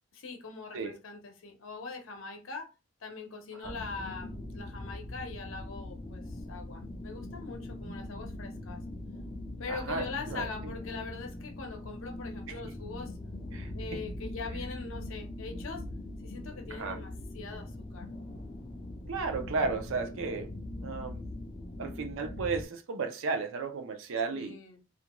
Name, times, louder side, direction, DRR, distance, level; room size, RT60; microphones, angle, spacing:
voice 1, 0.1-2.7 3.0-8.8 9.6-13.2 13.7-15.9 16.2-18.1 24.3-24.8, left 4 dB, 65° left, 0.7 m, -42 dB
sound 1, 3.6-22.7, left 1 dB, 25° left, 0.4 m, -41 dB
voice 2, 9.7-10.7 12.5-12.7 13.5-14.0 16.7-17.0 19.1-20.5 20.8-21.2 21.8-24.6, right 4 dB, 65° right, 0.4 m, -34 dB
2.4 x 2.2 x 2.9 m
head